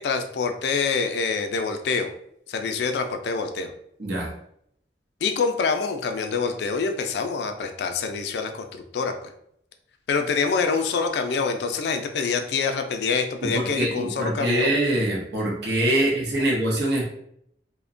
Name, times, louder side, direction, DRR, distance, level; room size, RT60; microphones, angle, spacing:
voice 1, 0.0-2.1 2.5-3.7 5.2-9.1 10.1-14.7 15.9-16.0, left 5 dB, 75° left, 6 dB, 0.3 m, -26 dB
voice 2, 4.0-4.3 13.4-17.1, right 1 dB, 75° right, -2 dB, 0.7 m, -24 dB
2.7 x 2.1 x 2.5 m, 0.72 s
head